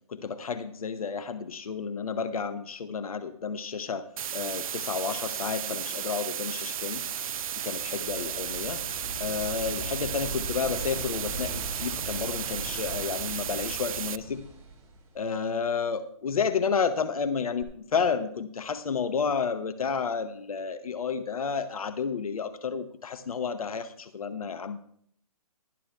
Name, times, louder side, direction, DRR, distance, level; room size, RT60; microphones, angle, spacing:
voice 1, 0.1-7.0 7.6-8.8 9.2-14.4 15.1-24.8, left 6 dB, 80° left, 11 dB, 0.8 m, -31 dB
sound 1, 4.2-14.2, right 9 dB, 70° right, 0.4 m, -34 dB
sound 2, 7.1-15.5 17.6-17.7, right 2 dB, 15° right, 2.1 m, -40 dB
19.5 x 11.0 x 2.3 m, 0.66 s
hypercardioid pair, 145°, 19 cm